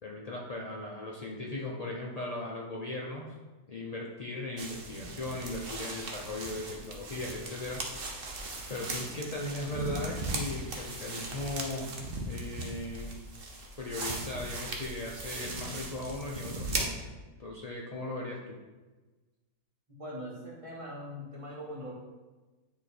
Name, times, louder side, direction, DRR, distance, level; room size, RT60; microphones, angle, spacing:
voice 1, 0.0-3.4 3.7-7.8 8.7-13.2 13.8-16.9 17.4-18.5, left 2 dB, 80° left, -2 dB, 0.3 m, -38 dB
sound 1, 4.6-16.9, right 2 dB, 45° right, 0.9 m, -38 dB
voice 2, 19.9-21.9, equal, 20° right, -5 dB, 1.6 m, -41 dB
9.3 x 3.1 x 4.2 m, 1.2 s
omnidirectional pair, 1.6 m